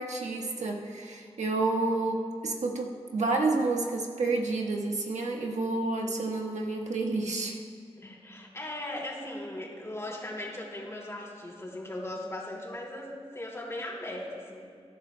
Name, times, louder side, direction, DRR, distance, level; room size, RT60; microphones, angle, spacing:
voice 1, 0.0-7.6, right 3 dB, 90° right, 1 dB, 1.3 m, -30 dB
voice 2, 8.0-14.7, left 1 dB, 25° left, -3 dB, 3.2 m, -38 dB
20.5 x 11.5 x 2.2 m, 2.1 s
wide cardioid pair, 60°, 12 cm